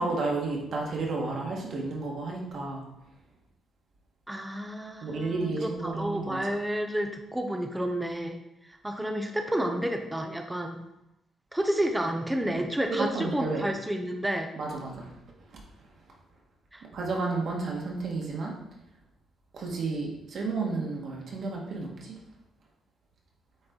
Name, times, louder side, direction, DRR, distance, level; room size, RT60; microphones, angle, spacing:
voice 1, 0.0-2.8 5.0-6.4 12.4-12.6 12.9-13.6 14.6-15.1 16.9-18.6 19.5-22.2, right 3 dB, 50° right, -1 dB, 1.6 m, -32 dB
voice 2, 4.3-8.4 8.8-10.8 11.5-14.5 16.7-16.8, right 1 dB, 5° right, 4 dB, 0.6 m, -30 dB
8.9 x 4.4 x 3.9 m, 0.86 s
cardioid pair, 165°, 0 cm